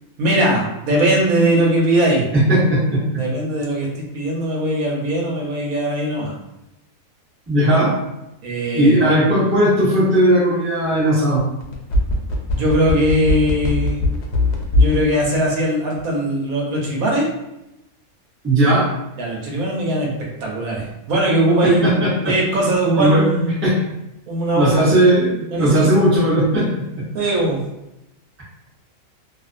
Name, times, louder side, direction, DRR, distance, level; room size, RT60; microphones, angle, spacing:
voice 1, 0.2-2.3 3.2-6.3 8.4-9.0 12.5-14.0 14.7-17.3 19.2-20.1 20.4-22.0 22.2-23.6 24.3-24.9 25.5-25.9 27.1-27.6, right 1 dB, 75° right, -3 dB, 1.1 m, -20 dB
voice 2, 2.3-3.2 7.5-8.0 8.7-11.4 18.4-18.9 21.6-22.4 23.0-23.2 23.6-23.8 24.5-26.9, right 1 dB, 15° right, -7 dB, 0.5 m, -17 dB
sound 1, 11.6-15.0 15.3-15.4, left 2 dB, 65° left, 0.7 m, -19 dB
2.5 x 2.4 x 2.5 m, 0.91 s
omnidirectional pair, 1.5 m